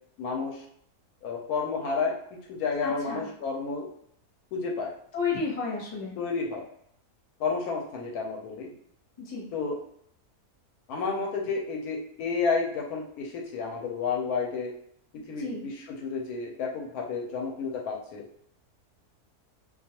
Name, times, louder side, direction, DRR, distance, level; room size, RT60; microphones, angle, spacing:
voice 1, 0.2-0.6 1.2-3.9 4.5-4.9 6.2-6.6 7.4-8.7 9.5-9.8 10.9-14.7 15.3-18.2, left 4 dB, 80° left, -1 dB, 1.1 m, -31 dB
voice 2, 2.8-3.3 5.1-6.2 9.2-9.5 15.2-15.6, left 5 dB, 35° left, -3 dB, 0.8 m, -32 dB
2.5 x 2.3 x 2.8 m, 0.69 s
omnidirectional pair, 1.6 m